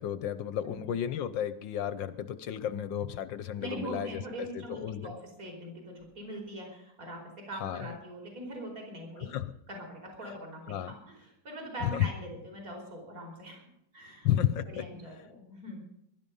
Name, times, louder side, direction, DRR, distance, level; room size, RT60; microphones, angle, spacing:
voice 1, 0.0-5.2 7.6-8.0 9.3-9.5 10.7-10.9 11.8-12.1 14.2-14.8, left 10 dB, 65° left, 14 dB, 1.3 m, -32 dB
voice 2, 3.6-7.2 7.5-9.3 9.7-13.6 13.9-14.3 14.7-15.8, right 1 dB, 35° right, 1 dB, 5.1 m, -42 dB
21.5 x 12.0 x 5.4 m, 0.79 s
omnidirectional pair, 2.4 m